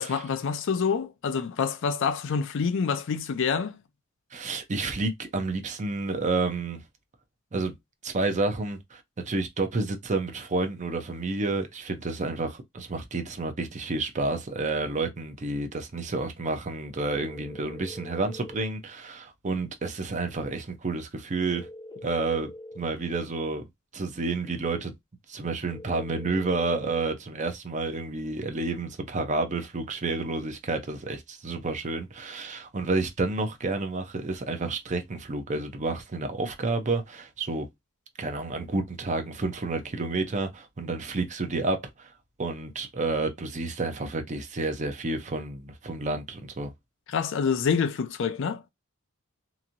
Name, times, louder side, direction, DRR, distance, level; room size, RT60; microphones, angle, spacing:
voice 1, 0.0-3.8 47.1-48.6, left 6 dB, 65° left, 0.4 m, -27 dB
voice 2, 4.3-6.8 7.5-7.7 8.0-21.7 22.0-22.5 22.8-23.6 23.9-24.9 25.3-37.7 38.2-41.9 42.4-46.7, right 3 dB, 35° right, 0.6 m, -30 dB
sound 1, 17.2-18.7 21.5-22.9 25.7-27.1, left 1 dB, 20° left, 0.6 m, -43 dB
2.9 x 2.6 x 2.5 m
head